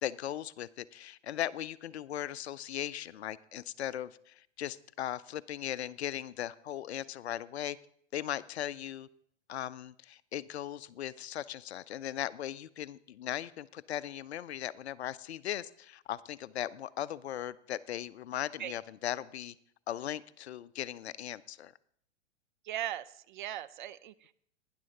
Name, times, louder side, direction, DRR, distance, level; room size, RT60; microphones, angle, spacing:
voice 1, 0.0-7.8 8.1-9.1 9.5-19.5 19.9-21.7, left 11 dB, 60° left, 18 dB, 0.5 m, -38 dB
voice 2, 22.7-24.3, right 11 dB, 45° right, 15 dB, 0.4 m, -39 dB
18.0 x 10.0 x 2.9 m, 0.66 s
figure-of-eight pair, 100°, 36 cm